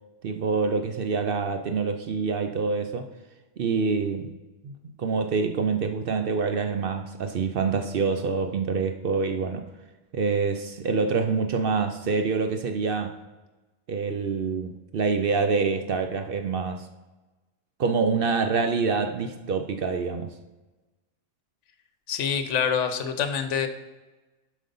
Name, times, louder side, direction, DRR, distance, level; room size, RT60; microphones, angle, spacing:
voice 1, 0.2-3.1 3.6-4.3 4.6-9.7 10.1-13.2 13.9-16.9 17.8-20.4, right 4 dB, 60° right, 7 dB, 0.6 m, -26 dB
voice 2, 22.1-23.7, left 7 dB, 65° left, 9 dB, 1.1 m, -26 dB
7.6 x 5.2 x 5.3 m, 1.2 s
omnidirectional pair, 1.4 m